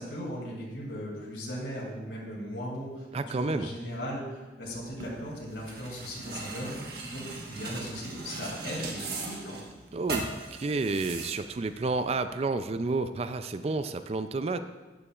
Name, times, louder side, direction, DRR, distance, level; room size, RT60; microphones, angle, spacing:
voice 1, 0.0-9.5, equal, 80° left, -4 dB, 2.5 m, -38 dB
voice 2, 3.1-3.7 9.9-14.6, right 3 dB, 35° right, 10 dB, 0.4 m, -30 dB
sound 1, 4.6-12.2, right 3 dB, 60° right, 1.3 m, -39 dB
12.0 x 9.9 x 2.4 m, 1.2 s
head